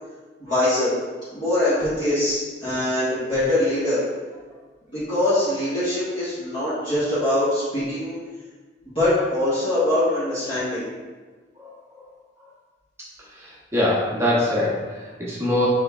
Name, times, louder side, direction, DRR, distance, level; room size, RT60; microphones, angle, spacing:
voice 1, 0.4-0.9 1.3-4.0 4.9-8.2 8.8-10.8, left 1 dB, 30° left, -13 dB, 1.4 m, -23 dB
voice 2, 13.0-15.7, left 1 dB, 15° right, -6 dB, 0.9 m, -24 dB
6.2 x 3.5 x 2.4 m, 1.4 s
head